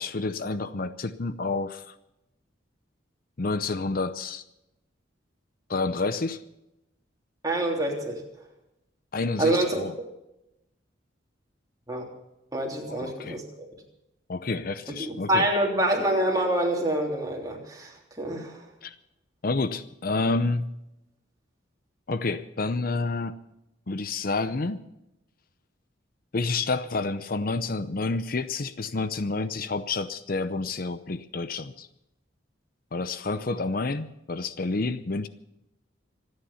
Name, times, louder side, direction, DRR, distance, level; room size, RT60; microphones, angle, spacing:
voice 1, 0.0-1.9 3.4-4.4 5.7-6.4 9.1-9.9 12.9-13.4 14.3-15.5 18.8-18.9 19.4-20.7 22.1-23.4 23.9-24.8 26.3-31.9 32.9-35.3, left 3 dB, 50° left, 12 dB, 0.7 m, -29 dB
voice 2, 7.4-8.2 9.4-9.9 11.9-12.0 12.5-13.7 15.0-18.6, right 1 dB, 20° right, 0 dB, 3.3 m, -26 dB
26.0 x 9.8 x 5.7 m, 0.89 s
head